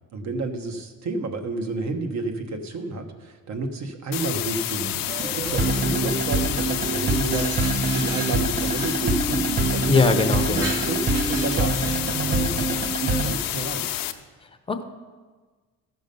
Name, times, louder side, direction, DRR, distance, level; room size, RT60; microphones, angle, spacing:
voice 1, 0.1-13.9, right 3 dB, 55° right, 6 dB, 1.3 m, -31 dB
sound 1, 4.1-14.1, left 13 dB, 90° left, 0.7 m, -29 dB
sound 2, 5.1-13.3, right 3 dB, 25° right, 0.7 m, -26 dB
Glass, 6.7-9.0 9.7-9.8 10.2-12.3, right 2 dB, 75° right, 3.2 m, -37 dB
voice 2, 9.9-10.7 14.4-14.8, left 3 dB, 15° left, 7 dB, 0.7 m, -22 dB
14.0 x 6.2 x 5.3 m, 1.4 s
cardioid pair, 140°, 33 cm